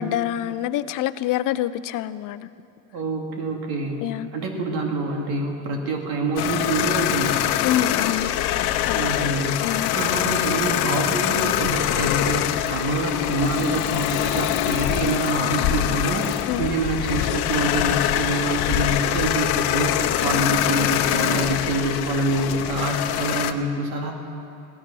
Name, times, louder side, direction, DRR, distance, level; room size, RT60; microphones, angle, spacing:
voice 1, 0.0-2.5 4.0-4.3 7.6-8.3 8.8-9.0 9.6-9.9 16.5-16.7, left 12 dB, 60° left, 0.5 m, -26 dB
voice 2, 2.9-4.1 4.3-7.5 8.9-9.7 9.9-24.1, right 2 dB, 85° right, 2.3 m, -26 dB
sound 1, 6.4-23.5, left 12 dB, 85° left, 0.8 m, -24 dB
17.5 x 13.0 x 6.2 m
cardioid pair, 160°, 37 cm